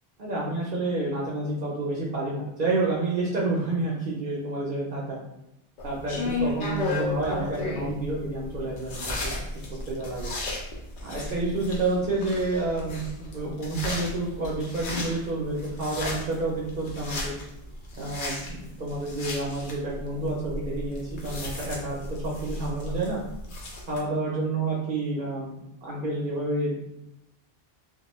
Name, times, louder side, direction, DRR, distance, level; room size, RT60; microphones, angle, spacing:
voice 1, 0.2-5.2 5.8-9.3 9.9-10.3 11.0-17.3 17.9-23.2 23.9-26.8, right 2 dB, 60° right, -4 dB, 0.7 m, -29 dB
sound 1, 5.8-24.0, left 2 dB, 60° left, 0.7 m, -34 dB
2.2 x 2.1 x 2.9 m, 0.86 s
omnidirectional pair, 1.1 m